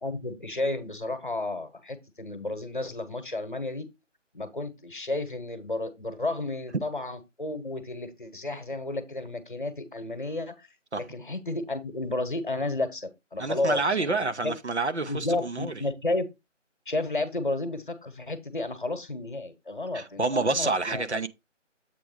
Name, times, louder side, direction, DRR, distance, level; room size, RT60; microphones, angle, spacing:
voice 1, 0.0-3.9 4.3-10.7 11.0-14.1 14.4-14.5 15.0-16.3 16.9-21.2, left 2 dB, 40° left, 1.1 m, -32 dB
voice 2, 13.4-15.7 19.9-21.3, right 3 dB, 60° right, 0.8 m, -28 dB
7.8 x 3.5 x 4.9 m
figure-of-eight pair, 160°, 38 cm